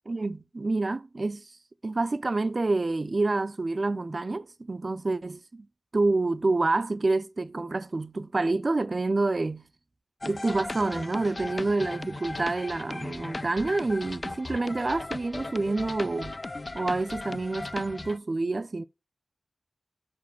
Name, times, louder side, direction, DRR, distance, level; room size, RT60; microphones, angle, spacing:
voice 1, 0.1-1.5 1.8-5.7 5.9-9.6 10.2-16.4 16.7-18.8, right 3 dB, 50° right, 0.5 m, -28 dB
sound 1, 10.2-18.2, left 2 dB, 45° left, 0.4 m, -37 dB
6.1 x 5.2 x 5.8 m
cardioid pair, 45°, 0 cm